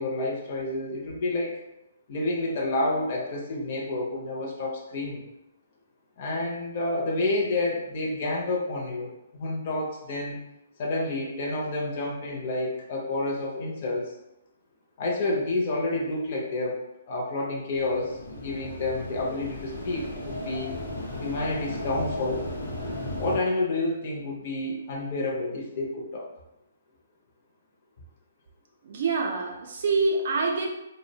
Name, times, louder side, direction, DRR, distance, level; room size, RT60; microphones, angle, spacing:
voice 1, 0.0-1.6 2.1-5.2 6.2-10.4 10.8-14.1 15.0-20.8 21.2-22.5 23.2-26.3, left 2 dB, 40° left, -3 dB, 0.5 m, -29 dB
sound 1, 17.7-23.4, left 1 dB, 85° left, 0.7 m, -35 dB
voice 2, 28.9-30.7, right 3 dB, 60° right, 0 dB, 0.4 m, -26 dB
2.5 x 2.0 x 2.7 m, 0.89 s
hypercardioid pair, 160°, 0 cm